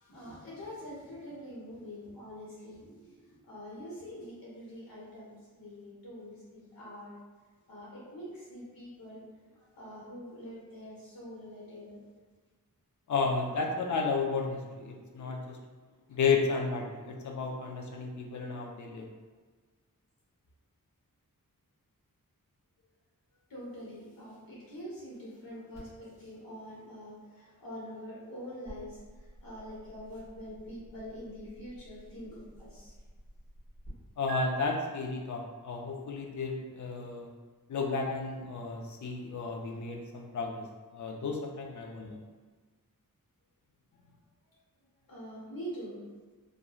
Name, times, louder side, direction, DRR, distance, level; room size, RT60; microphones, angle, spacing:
voice 1, 0.1-3.1 3.4-7.2 7.7-9.2 9.6-12.0 23.5-29.0 29.4-32.9 45.1-46.0, equal, 90° left, -7 dB, 1.1 m, -45 dB
voice 2, 13.1-15.6 16.1-19.1 34.2-37.3 37.7-40.6 40.9-42.2, left 4 dB, 60° left, 1 dB, 0.5 m, -33 dB
sound 1, 25.7-33.9 34.3-34.4, right 2 dB, 40° left, 1.4 m, -49 dB
2.9 x 2.5 x 2.3 m, 1.4 s
wide cardioid pair, 105°, 34 cm